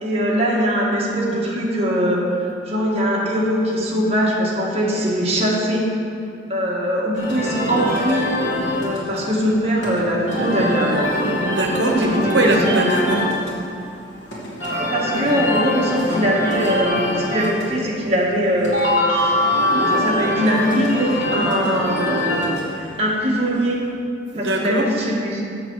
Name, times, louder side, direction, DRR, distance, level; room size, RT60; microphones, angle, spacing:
voice 1, 0.0-5.9 6.5-8.3 8.8-11.1 12.1-12.5 14.6-19.4 19.7-23.8 24.4-25.4, equal, 35° right, -5 dB, 1.6 m, -21 dB
sound 1, 7.2-23.8, left 1 dB, 80° left, 2.0 m, -23 dB
voice 2, 11.5-13.3 24.3-24.9, right 1 dB, 75° right, 2 dB, 1.0 m, -20 dB
7.2 x 7.0 x 4.7 m, 2.4 s
head